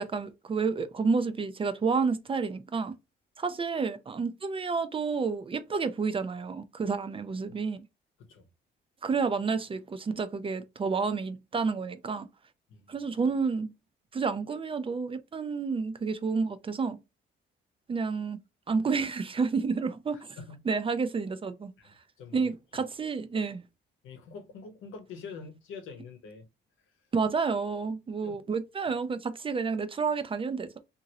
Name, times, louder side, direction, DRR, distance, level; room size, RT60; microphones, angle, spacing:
voice 1, 0.0-2.9 3.4-7.8 9.0-12.3 12.9-13.7 14.1-17.0 17.9-18.4 18.7-20.3 20.7-21.7 22.3-23.6 27.1-30.8, right 5 dB, 25° right, 0.4 m, -30 dB
voice 2, 20.1-20.7 21.8-22.5 24.0-26.5 28.2-28.4, left 5 dB, 85° left, 0.8 m, -45 dB
2.9 x 2.6 x 2.7 m
cardioid pair, 90°, 20 cm